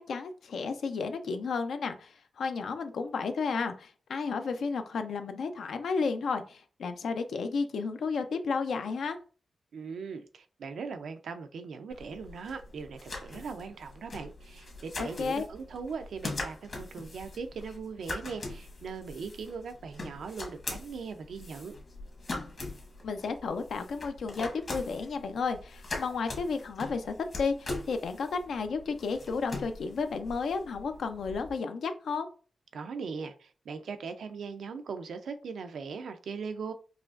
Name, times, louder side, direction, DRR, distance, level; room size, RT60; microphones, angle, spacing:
voice 1, 0.0-9.2 15.0-15.5 23.0-32.3, left 4 dB, 85° left, 0.5 m, -32 dB
voice 2, 9.7-21.7 32.7-36.7, right 5 dB, 85° right, 0.4 m, -40 dB
sound 1, 11.9-31.5, left 2 dB, 55° left, 1.2 m, -42 dB
4.8 x 2.4 x 2.4 m
cardioid pair, 85°, 0 cm